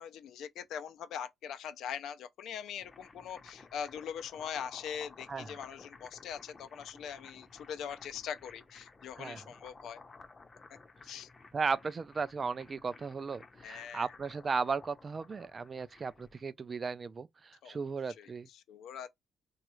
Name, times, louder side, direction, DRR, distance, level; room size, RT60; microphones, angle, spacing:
voice 1, 0.0-10.0 11.0-11.3 13.6-14.1 17.6-17.8 18.2-19.2, left 8 dB, 80° left, 0.4 m, -42 dB
sound 1, 2.5-16.4, left 3 dB, 30° left, 0.6 m, -55 dB
voice 2, 11.5-18.5, right 5 dB, 35° right, 0.3 m, -36 dB
3.0 x 2.3 x 3.0 m
cardioid pair, 90°, 0 cm